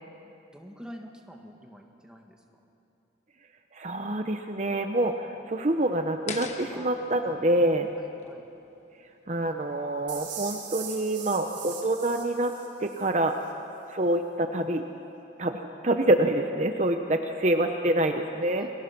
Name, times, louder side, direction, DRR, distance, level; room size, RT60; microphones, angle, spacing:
voice 1, 0.5-2.4 6.7-6.9 8.0-8.5 18.5-18.7, equal, 5° right, 1 dB, 1.9 m, -46 dB
voice 2, 3.7-7.9 9.3-12.5 12.8-13.4 13.9-14.8 15.4-18.7, right 1 dB, 40° right, 5 dB, 0.9 m, -26 dB
sound 1, 6.3-9.3, left 4 dB, 40° left, 1.3 m, -42 dB
sound 2, 10.1-13.1, right 7 dB, 80° right, 4.5 m, -40 dB
29.5 x 22.0 x 6.1 m, 2.9 s
head